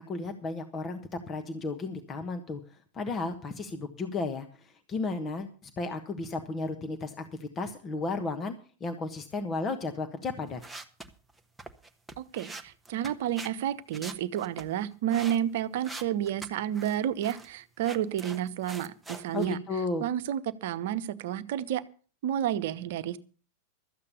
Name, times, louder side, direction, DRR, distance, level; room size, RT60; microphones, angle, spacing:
voice 1, 0.0-2.6 2.9-4.5 4.9-10.6 19.3-20.0, left 3 dB, 25° left, 6 dB, 1.3 m, -34 dB
sound 1, 10.5-13.5 13.9-15.4 15.8-17.0 17.2-17.5 17.8-19.5, right 2 dB, 5° right, 1.3 m, -43 dB
voice 2, 12.2-19.6 20.0-21.8 22.2-23.2, right 11 dB, 55° right, 12 dB, 1.0 m, -30 dB
13.5 x 8.5 x 6.9 m, 0.38 s
figure-of-eight pair, 90°, 0 cm